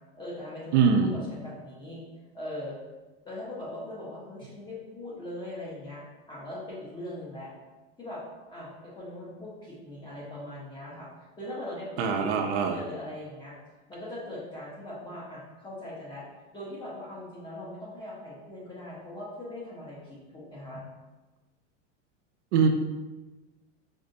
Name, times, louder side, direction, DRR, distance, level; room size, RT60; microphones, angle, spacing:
voice 1, 0.1-2.0 2.3-2.8 3.2-7.5 8.0-8.2 8.5-13.6 13.9-16.3 16.5-20.8, left 1 dB, 15° left, -6 dB, 0.8 m, -40 dB
voice 2, 0.7-1.1 12.0-12.8 22.5-22.7, right 6 dB, 70° right, 4 dB, 0.5 m, -22 dB
5.1 x 2.1 x 2.6 m, 1.2 s
supercardioid pair, 140°, 36 cm